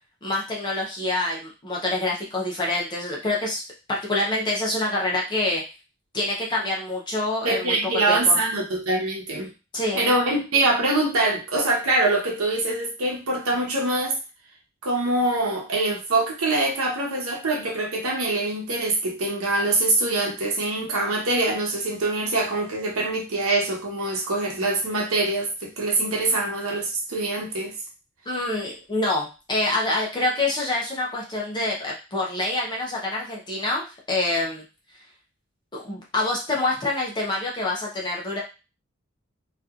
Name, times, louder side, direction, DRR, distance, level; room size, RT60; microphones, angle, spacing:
voice 1, 0.2-3.6 3.9-5.6 6.1-7.8 8.1-8.4 9.7-10.0 28.3-34.6 35.7-38.4, left 2 dB, 20° left, -3 dB, 0.5 m, -26 dB
voice 2, 7.4-9.5 9.9-14.2 14.8-27.7, right 2 dB, 90° right, 0 dB, 0.8 m, -24 dB
2.8 x 2.4 x 2.3 m, 0.30 s
head